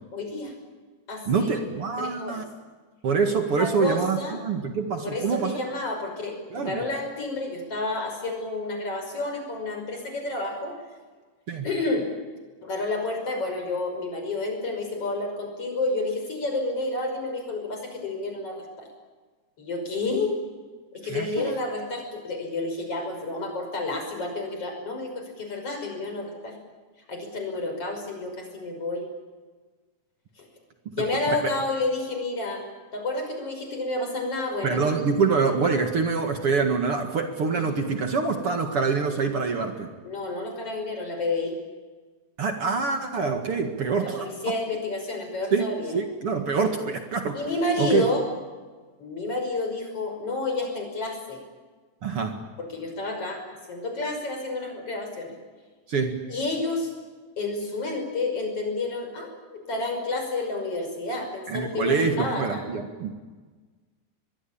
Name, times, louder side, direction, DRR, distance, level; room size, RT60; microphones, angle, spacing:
voice 1, 0.1-0.5 1.1-1.7 2.0-2.4 3.6-4.4 5.0-10.7 11.6-12.1 12.6-18.9 19.6-20.4 20.9-26.6 27.1-29.1 31.0-32.6 32.9-35.0 37.5-37.6 40.0-41.6 44.0-46.0 47.3-48.2 49.0-51.4 52.6-55.3 56.3-56.9 57.4-62.6, left 2 dB, 50° left, 4 dB, 6.7 m, -30 dB
voice 2, 1.3-2.4 3.0-5.6 6.5-6.9 11.5-11.7 21.0-21.5 31.0-31.5 34.6-39.9 42.4-44.5 45.5-45.7 45.9-47.4 47.8-48.1 52.0-52.4 55.9-56.2 61.5-63.1, right 5 dB, 50° right, 5 dB, 2.6 m, -25 dB
24.5 x 22.0 x 8.8 m, 1.4 s
omnidirectional pair, 3.5 m